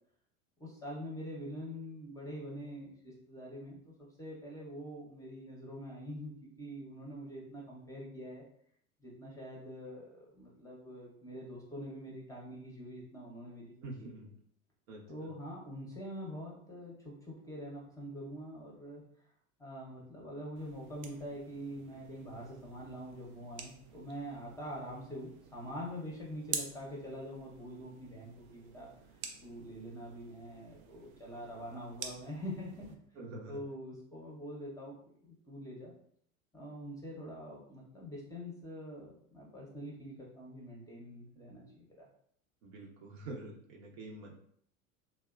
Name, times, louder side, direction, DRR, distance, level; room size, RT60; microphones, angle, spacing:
voice 1, 0.6-8.4 9.0-13.7 14.0-14.1 15.1-19.0 19.6-28.9 29.4-33.0 33.5-35.0 35.2-35.9 36.5-42.1, equal, 10° left, -4 dB, 0.7 m, -45 dB
voice 2, 13.8-14.3 14.9-15.3 33.1-33.6 42.6-44.3, right 2 dB, 60° right, -1 dB, 0.9 m, -46 dB
sound 1, 20.6-33.0, right 6 dB, 40° right, 0.5 m, -48 dB
2.8 x 2.2 x 2.3 m, 0.65 s
hypercardioid pair, 90°, 42 cm